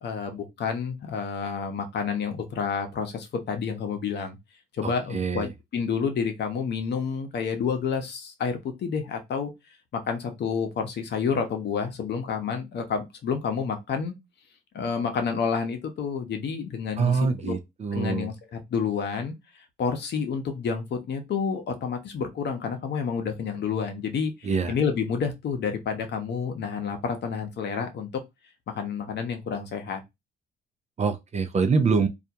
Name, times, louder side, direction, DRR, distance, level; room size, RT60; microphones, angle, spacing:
voice 1, 0.0-4.4 4.7-9.5 9.9-14.1 14.7-17.5 17.9-19.3 19.8-28.2 28.7-30.0, left 6 dB, 60° left, 0.8 m, -29 dB
voice 2, 5.1-5.5 17.0-18.3 24.4-24.7 31.0-32.1, right 5 dB, 35° right, 0.5 m, -24 dB
2.4 x 2.1 x 2.7 m
supercardioid pair, 65°, 20 cm